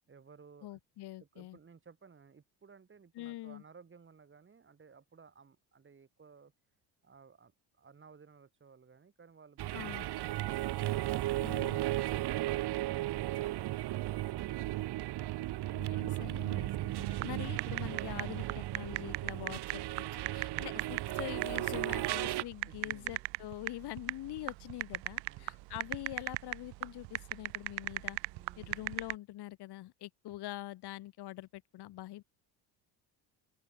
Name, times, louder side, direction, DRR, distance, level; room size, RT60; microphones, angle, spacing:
voice 1, 0.1-0.8 1.2-6.5 7.0-12.4 22.7-23.2 25.2-25.7 28.3-28.8, right 5 dB, 25° right, 6.8 m, -58 dB
voice 2, 0.6-1.6 3.1-3.6 9.7-10.0 11.4-11.8 15.7-19.8 20.1-28.2 28.6-32.2, left 16 dB, 60° left, 1.6 m, -44 dB
sound 1, 9.6-22.4, right 15 dB, 60° right, 1.7 m, -35 dB
sound 2, 17.2-29.1, right 23 dB, 80° right, 1.1 m, -39 dB
open air
cardioid pair, 120°, 44 cm